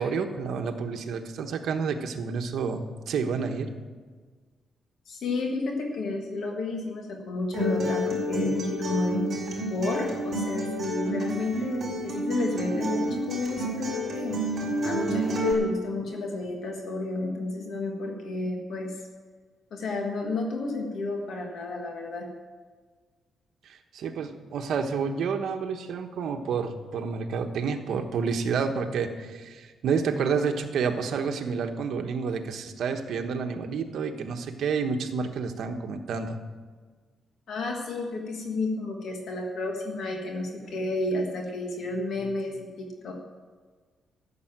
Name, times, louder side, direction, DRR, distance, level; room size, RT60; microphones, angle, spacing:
voice 1, 0.0-3.7 23.6-36.4 40.7-40.8, right 5 dB, 65° right, 6 dB, 1.2 m, -29 dB
voice 2, 5.1-9.3 9.7-14.5 14.8-19.0 19.7-22.3 37.5-43.1, left 2 dB, 60° left, 1 dB, 1.6 m, -31 dB
Acoustic guitar, 7.5-15.5, equal, 35° right, 4.5 m, -29 dB
14.0 x 7.0 x 8.9 m, 1.5 s
cardioid pair, 155°, 0 cm